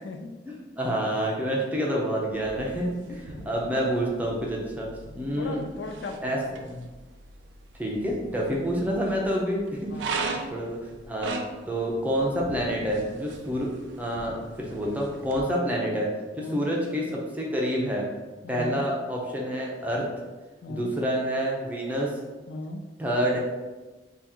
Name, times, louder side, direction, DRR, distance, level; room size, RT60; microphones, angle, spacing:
voice 1, 0.5-4.9 5.1-5.6 6.2-6.9 7.8-9.9 10.5-10.8 11.1-11.4 11.7-13.7 14.0-16.1 16.4-18.1 18.5-20.1 20.7-22.2 23.0-23.4, equal, 10° right, -3 dB, 0.6 m, -28 dB
sound 1, 2.3-15.4, right 4 dB, 75° right, 0.4 m, -40 dB
voice 2, 3.3-3.6 5.0-6.6 9.9-10.6 15.4-15.5 16.4-16.6 18.4-18.9 20.6-20.9 22.5-22.9, left 2 dB, 80° left, 5 dB, 0.3 m, -38 dB
2.8 x 2.4 x 3.6 m, 1.2 s
head